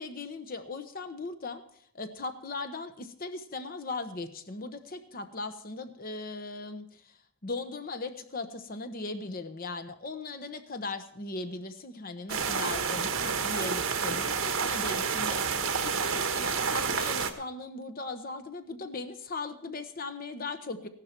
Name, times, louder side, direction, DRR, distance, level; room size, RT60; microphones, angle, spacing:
voice 1, 0.0-1.6 1.9-7.2 7.4-20.9, left 3 dB, 45° left, 8 dB, 1.0 m, -38 dB
sound 1, 12.3-17.3, right 6 dB, 70° right, 1.4 m, -29 dB
15.5 x 12.0 x 4.5 m, 0.62 s
head